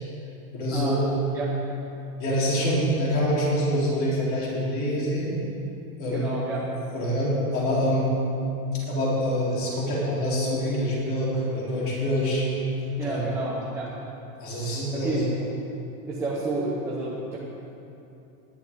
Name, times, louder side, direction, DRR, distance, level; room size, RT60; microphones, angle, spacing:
voice 1, 0.5-1.0 2.2-5.4 6.0-6.3 6.9-8.1 8.7-12.5 13.0-13.3 14.4-15.2, equal, 30° left, -6 dB, 3.4 m, -25 dB
voice 2, 6.1-6.6 13.0-13.9 14.9-15.3 16.1-17.4, right 2 dB, 5° right, -7 dB, 0.6 m, -30 dB
19.0 x 11.0 x 3.6 m, 2.8 s
supercardioid pair, 175°, 46 cm